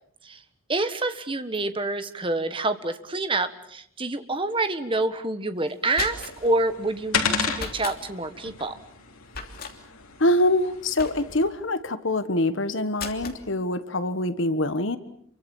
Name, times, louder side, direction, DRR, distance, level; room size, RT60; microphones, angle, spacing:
voice 1, 0.7-8.7, right 2 dB, 25° right, 9 dB, 1.5 m, -27 dB
sound 1, 5.7-6.5 7.5-8.0 9.3-9.8 11.0-11.5 13.0-13.4, left 4 dB, 45° left, 3.1 m, -36 dB
sound 2, 6.0-11.5, left 5 dB, 90° left, 3.6 m, -33 dB
voice 2, 10.2-15.0, left 1 dB, 65° left, 12 dB, 1.4 m, -24 dB
28.5 x 24.0 x 7.2 m, 0.65 s
head